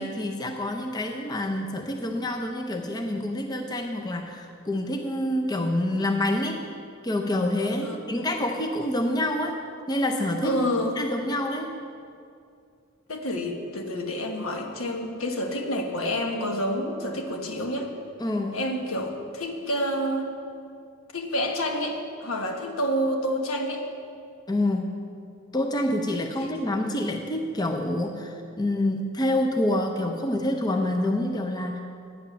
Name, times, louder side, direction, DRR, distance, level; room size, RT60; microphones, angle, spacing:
voice 1, 0.0-6.6 7.0-9.6 9.9-10.6 11.0-11.7 18.2-18.6 24.5-24.9 25.5-31.8, left 1 dB, 20° left, 3 dB, 0.6 m, -27 dB
voice 2, 10.4-11.0 13.1-17.9 18.5-20.3 21.1-23.8 26.4-26.5, equal, 75° left, 2 dB, 1.3 m, -28 dB
9.9 x 8.0 x 6.8 m, 2.4 s
head